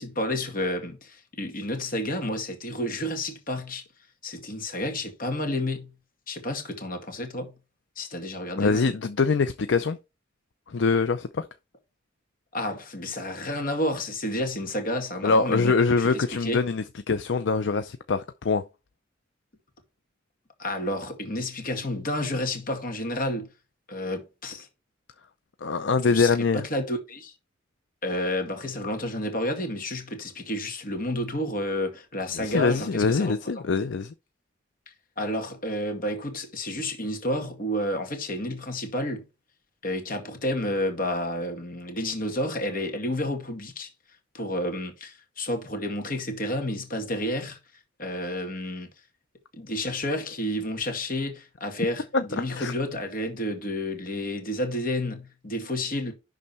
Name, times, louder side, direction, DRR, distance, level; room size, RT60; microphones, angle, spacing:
voice 1, 0.0-3.8 4.2-5.9 6.3-7.5 8.0-8.9 12.5-16.6 20.6-23.5 23.9-24.7 26.1-27.3 28.0-33.3 35.2-39.2 39.8-43.9 44.3-47.6 48.0-48.9 49.5-56.1, left 1 dB, 45° left, 2.1 m, -30 dB
voice 2, 8.6-10.0 10.7-11.5 15.2-18.7 25.6-26.6 32.4-34.1 52.1-52.7, left 4 dB, 65° left, 0.5 m, -24 dB
11.0 x 3.8 x 4.4 m
head